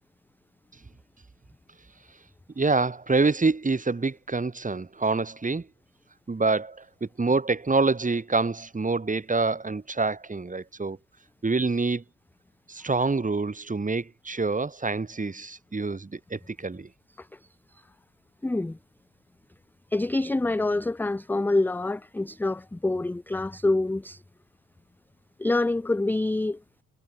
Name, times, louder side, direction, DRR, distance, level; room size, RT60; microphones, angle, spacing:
voice 1, 2.6-5.7 6.3-11.0 11.4-12.0 12.7-16.9, right 3 dB, 25° right, 2.4 m, -26 dB
voice 2, 18.4-18.8 19.9-24.2 25.4-26.6, left 2 dB, 5° left, 0.4 m, -26 dB
cardioid pair, 80°, 34 cm